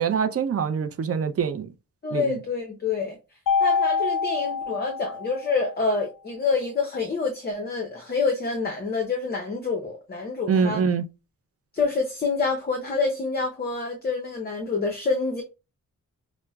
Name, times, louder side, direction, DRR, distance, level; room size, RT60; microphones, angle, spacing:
voice 1, 0.0-1.7 2.1-2.4 10.5-11.0, right 6 dB, 45° right, 0.4 m, -24 dB
voice 2, 2.0-3.2 3.6-10.8 11.7-15.4, left 4 dB, 30° left, 0.6 m, -27 dB
Mallet percussion, 3.5-5.7, left 5 dB, 65° left, 0.5 m, -25 dB
5.7 x 2.1 x 2.2 m
cardioid pair, 85°, 34 cm